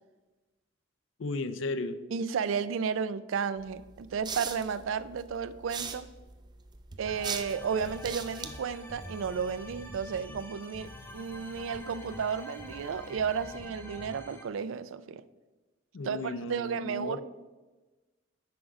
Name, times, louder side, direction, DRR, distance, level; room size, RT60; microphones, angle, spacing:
voice 1, 1.2-2.0 15.9-17.2, left 2 dB, 70° left, 0.5 m, -34 dB
voice 2, 2.1-6.1 7.0-15.2 16.0-17.2, right 6 dB, 90° right, 0.4 m, -33 dB
sound 1, 3.6-10.5, right 5 dB, 20° right, 0.5 m, -42 dB
sound 2, 7.0-14.4, left 1 dB, 15° left, 0.8 m, -46 dB
6.1 x 4.8 x 4.9 m
head